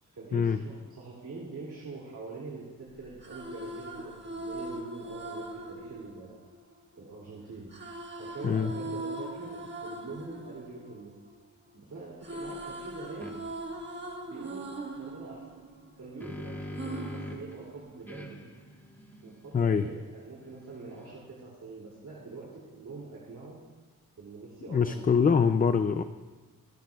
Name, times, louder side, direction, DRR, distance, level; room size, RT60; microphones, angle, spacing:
voice 1, 0.0-6.4 6.9-7.7 8.1-11.2 11.7-13.5 14.3-15.7 16.0-18.5 19.2-23.6 24.2-25.5, right 3 dB, 60° right, -5 dB, 2.8 m, -44 dB
sound 1, 3.0-7.1 7.7-11.8 12.0-16.3 16.8-18.2, right 2 dB, 30° right, 1.6 m, -41 dB
sound 2, 13.2-13.4 15.8-17.5 18.1-21.4, left 1 dB, 5° left, 1.4 m, -43 dB
voice 2, 19.5-19.9 24.7-26.0, left 6 dB, 25° left, 9 dB, 0.4 m, -24 dB
25.0 x 13.5 x 2.4 m, 1.3 s
wide cardioid pair, 140°, 34 cm